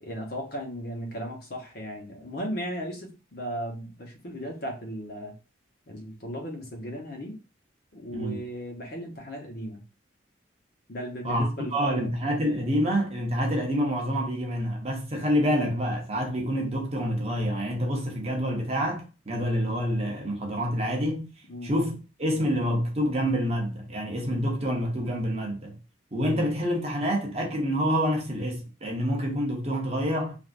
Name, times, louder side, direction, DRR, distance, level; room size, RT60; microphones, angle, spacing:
voice 1, 0.0-5.3 5.9-7.4 7.9-9.8 10.9-12.2 21.5-21.7, equal, 50° left, 0.9 m, -36 dB
voice 2, 8.1-8.4 11.2-21.3 21.6-25.8 26.1-30.4, equal, 30° right, 0.7 m, -27 dB
3.3 x 2.6 x 2.5 m
head